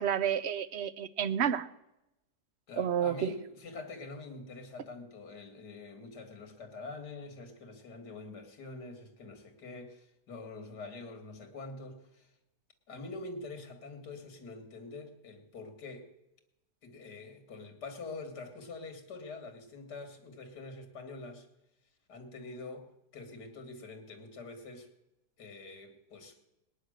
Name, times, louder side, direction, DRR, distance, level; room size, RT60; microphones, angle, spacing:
voice 1, 0.0-1.7 2.8-3.3, right 9 dB, 55° right, 0.8 m, -30 dB
voice 2, 2.7-12.3 12.9-16.1 16.8-21.5 22.1-22.9 23.1-24.9 25.4-26.4, left 3 dB, 80° left, 2.7 m, -45 dB
19.5 x 10.5 x 6.5 m
omnidirectional pair, 1.7 m